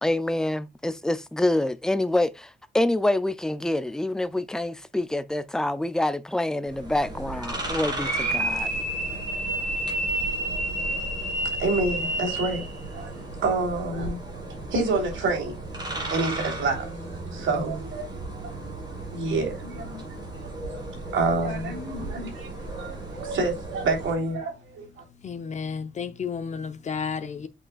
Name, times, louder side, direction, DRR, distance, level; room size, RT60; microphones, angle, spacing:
voice 1, 0.0-8.7, left 1 dB, 5° left, 0.3 m, -26 dB
sound 1, 6.7-24.1, right 2 dB, 20° right, 2.9 m, -36 dB
sound 2, 8.0-12.7, right 1 dB, 40° right, 2.7 m, -29 dB
voice 2, 11.6-15.5 15.9-16.9 17.3-18.6 18.9-25.0, right 3 dB, 85° right, 3.4 m, -29 dB
voice 3, 25.2-27.5, left 6 dB, 35° left, 0.8 m, -32 dB
8.4 x 5.4 x 2.3 m
wide cardioid pair, 175°, 20 cm